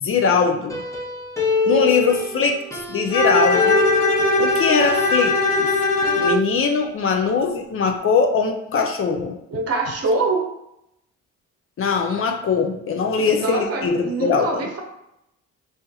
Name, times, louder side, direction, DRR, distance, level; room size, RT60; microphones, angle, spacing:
voice 1, 0.0-0.8 1.7-2.6 2.9-3.8 4.4-5.7 6.2-9.4 11.8-14.6, left 5 dB, 45° left, 4 dB, 0.5 m, -21 dB
sound 1, 0.7-3.3 3.5-5.7 6.0-6.3, left 3 dB, 10° left, 0.7 m, -25 dB
voice 2, 1.7-2.0 9.5-10.5 13.2-14.8, right 3 dB, 50° right, 2 dB, 0.8 m, -24 dB
Bowed string instrument, 3.1-6.5, left 2 dB, 85° left, 0.7 m, -19 dB
4.3 x 2.7 x 2.3 m, 0.82 s
cardioid pair, 90°, 30 cm